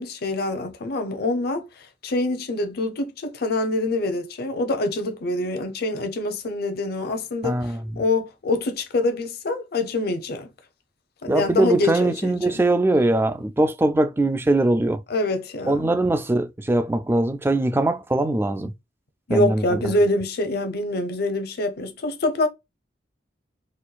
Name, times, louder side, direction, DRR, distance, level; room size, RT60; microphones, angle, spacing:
voice 1, 0.0-1.6 2.0-7.6 8.0-10.5 11.2-12.6 15.1-15.9 19.3-22.5, left 2 dB, 55° left, 0.7 m, -25 dB
voice 2, 7.4-8.0 11.3-15.0 15.7-18.7 19.3-19.8, right 2 dB, 10° right, 0.3 m, -21 dB
4.3 x 2.2 x 2.4 m
head